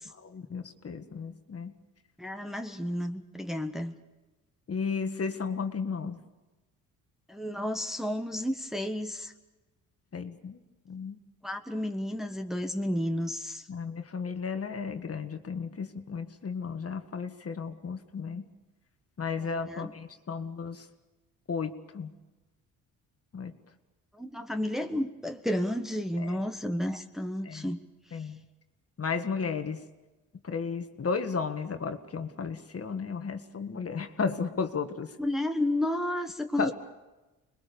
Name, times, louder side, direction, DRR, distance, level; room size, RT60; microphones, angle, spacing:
voice 1, 0.1-1.7 4.7-6.2 10.1-10.6 10.9-11.2 13.7-18.5 19.2-20.9 21.5-22.2 23.3-23.6 26.2-26.4 27.4-27.7 28.1-28.4 29.0-29.8 30.4-35.2 36.6-36.7, left 5 dB, 40° left, 7 dB, 1.7 m, -34 dB
voice 2, 2.2-3.9 7.3-9.3 11.4-13.7 19.4-19.9 24.1-27.8 28.1-28.2 35.2-36.7, left 1 dB, ahead, 5 dB, 1.4 m, -32 dB
26.0 x 21.0 x 7.0 m, 1.1 s
supercardioid pair, 65°, 36 cm